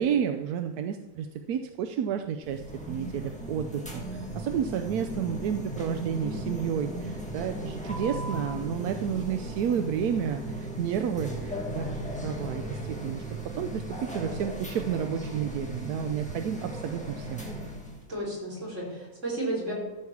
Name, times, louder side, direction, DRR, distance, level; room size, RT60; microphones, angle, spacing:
voice 1, 0.0-2.6 2.9-11.9 12.2-13.2 13.5-13.8 14.1-17.5, right 8 dB, 90° right, 6 dB, 1.1 m, -31 dB
sound 1, 2.4-18.0, right 1 dB, 5° left, 1.6 m, -36 dB
voice 2, 18.1-19.7, right 1 dB, 55° right, -5 dB, 4.9 m, -32 dB
13.5 x 4.7 x 7.1 m, 1.1 s
omnidirectional pair, 1.6 m